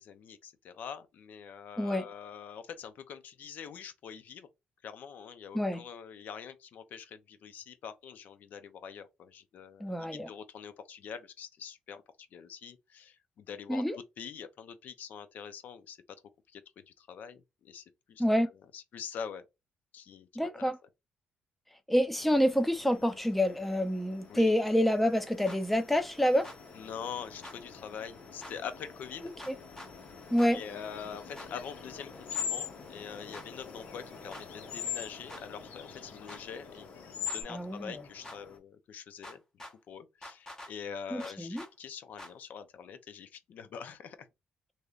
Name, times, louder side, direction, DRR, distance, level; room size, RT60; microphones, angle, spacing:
voice 1, 0.0-4.5 4.8-13.8 14.2-16.0 16.5-18.2 18.7-19.5 19.9-20.7 24.3-24.5 26.7-29.3 30.5-44.3, left 7 dB, 65° left, 0.6 m, -44 dB
voice 2, 9.8-10.3 13.7-14.0 18.2-18.5 20.4-20.8 21.9-26.5 29.5-29.6 30.3-30.6 37.5-38.0 41.1-41.6, equal, 5° left, 0.5 m, -27 dB
sound 1, 22.1-38.6, left 4 dB, 40° left, 0.8 m, -51 dB
sound 2, 25.5-25.6 26.4-26.6 27.4-27.6 28.4-28.5 29.4-29.9 30.4-30.5 31.4-31.5 32.3-32.5 33.3-33.5 34.3-34.5 35.3-35.4 36.3-36.4 37.3-37.4 38.2-38.4 39.2-39.7 40.2-40.7 41.2-41.7 42.2-42.3, left 1 dB, 20° left, 1.1 m, -46 dB
sound 3, 30.6-37.4, left 8 dB, 80° left, 0.9 m, -40 dB
3.1 x 2.7 x 2.4 m
cardioid pair, 115°, 3 cm